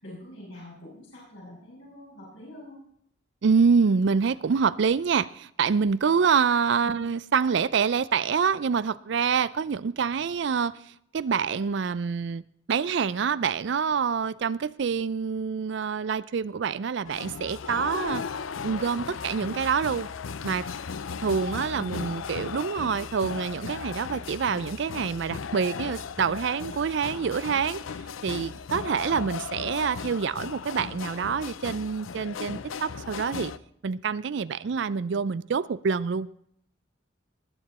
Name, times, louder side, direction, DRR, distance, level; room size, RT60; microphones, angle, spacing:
voice 1, 0.0-2.8 6.8-6.9 21.7-22.1, left 1 dB, 70° left, 6.2 m, -44 dB
voice 2, 3.4-12.4 12.7-18.2 18.6-20.1 20.4-20.7 21.2-27.8 28.2-33.5 33.8-36.3, right 6 dB, 60° right, 0.4 m, -26 dB
sound 1, 17.0-33.6, left 6 dB, 90° left, 0.6 m, -36 dB
20.0 x 9.0 x 4.2 m
head